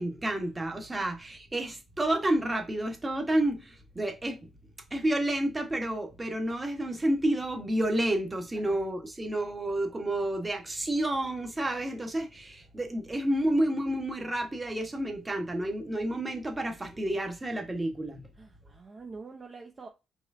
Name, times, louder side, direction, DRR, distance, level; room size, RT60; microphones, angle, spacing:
voice 1, 0.0-4.5 4.9-18.2, right 1 dB, 20° right, 1.2 m, -30 dB
voice 2, 8.5-8.8 18.4-19.9, right 4 dB, 35° right, 0.7 m, -46 dB
4.7 x 3.2 x 2.6 m
cardioid pair, 80°, 0 cm